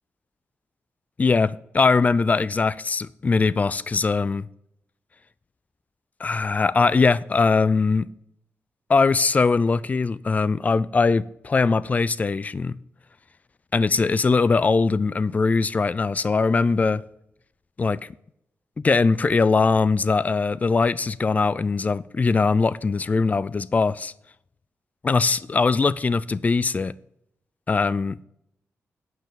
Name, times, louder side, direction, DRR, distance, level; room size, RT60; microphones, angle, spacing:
voice 1, 1.2-4.5 6.2-8.1 8.9-12.8 13.7-17.0 17.8-18.1 18.8-24.1 25.0-26.9 27.7-28.3, left 4 dB, 30° left, 0.4 m, -21 dB
9.3 x 5.8 x 6.8 m
wide cardioid pair, 145°, 5 cm